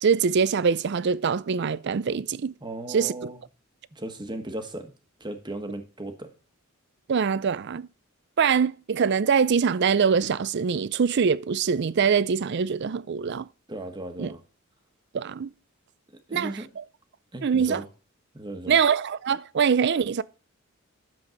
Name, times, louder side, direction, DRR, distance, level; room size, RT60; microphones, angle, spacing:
voice 1, 0.0-2.5 2.9-3.1 7.1-7.9 8.4-13.5 14.2-14.3 15.1-15.5 16.3-16.8 17.4-17.8 18.7-20.2, right 6 dB, 50° right, 0.4 m, -23 dB
voice 2, 2.6-3.4 3.9-4.9 5.2-6.3 13.7-14.4 16.3-16.7 17.3-17.8 18.3-18.8, right 1 dB, 20° right, 1.3 m, -36 dB
11.0 x 7.2 x 5.1 m
head